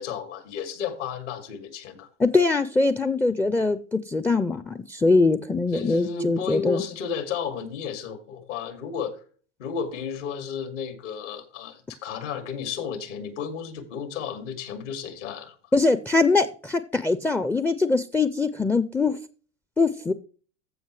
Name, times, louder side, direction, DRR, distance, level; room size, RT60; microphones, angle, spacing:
voice 1, 0.0-2.1 5.7-9.2 9.6-15.5, left 7 dB, 80° left, 2.5 m, -33 dB
voice 2, 2.2-6.8 15.7-19.2 19.8-20.1, left 3 dB, 5° left, 0.4 m, -22 dB
15.0 x 5.4 x 3.2 m
supercardioid pair, 110°, 36 cm